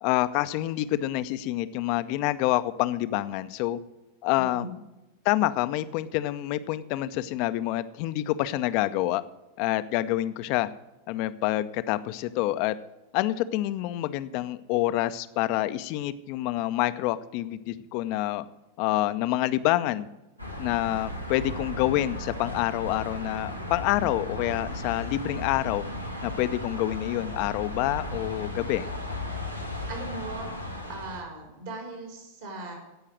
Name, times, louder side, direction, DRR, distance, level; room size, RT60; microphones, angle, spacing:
voice 1, 0.0-3.8 4.2-4.7 5.2-9.2 9.6-10.7 11.1-12.8 13.1-18.4 18.8-20.1 20.6-25.8 26.2-28.9, left 15 dB, 45° left, 13 dB, 0.6 m, -27 dB
voice 2, 4.3-4.7 29.9-30.5 30.9-32.7, right 3 dB, 60° right, 1 dB, 3.9 m, -38 dB
sound 1, 20.4-31.2, left 1 dB, 90° right, 1.5 m, -35 dB
16.0 x 5.7 x 6.3 m, 1.0 s
figure-of-eight pair, 90°, 0 cm